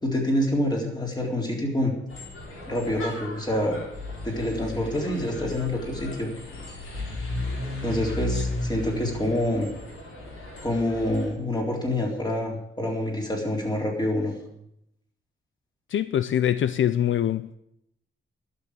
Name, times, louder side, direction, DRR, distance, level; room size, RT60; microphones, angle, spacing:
voice 1, 0.0-1.9 2.7-3.8 4.2-6.3 7.8-9.7 10.6-14.3, left 1 dB, 20° left, 3.8 m, -27 dB
sound 1, 2.1-11.3, left 2 dB, 90° left, 4.3 m, -34 dB
voice 2, 15.9-17.6, left 10 dB, 70° left, 0.5 m, -24 dB
12.0 x 6.9 x 9.4 m
cardioid pair, 95°, 21 cm